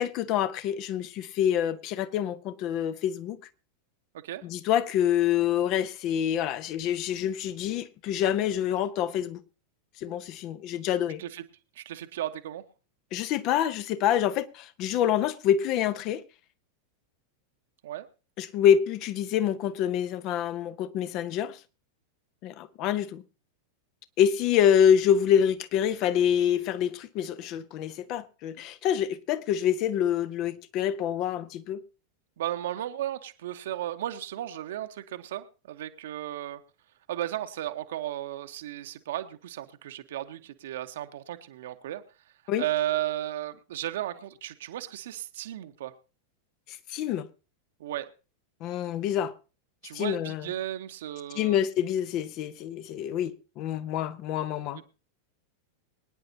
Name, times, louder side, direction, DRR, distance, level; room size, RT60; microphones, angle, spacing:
voice 1, 0.0-3.4 4.4-9.4 10.0-11.2 13.1-16.2 18.4-21.6 22.4-23.2 24.2-31.8 42.5-42.6 46.7-47.3 48.6-49.3 49.9-50.5 51.3-54.8, left 9 dB, 40° left, 1.0 m, -26 dB
voice 2, 11.8-12.6 17.8-18.1 32.4-36.6 37.1-42.0 42.6-45.9 47.8-48.1 49.8-51.6 54.7-54.9, right 13 dB, 60° right, 1.1 m, -34 dB
23.5 x 10.0 x 2.9 m
figure-of-eight pair, 90°, 0 cm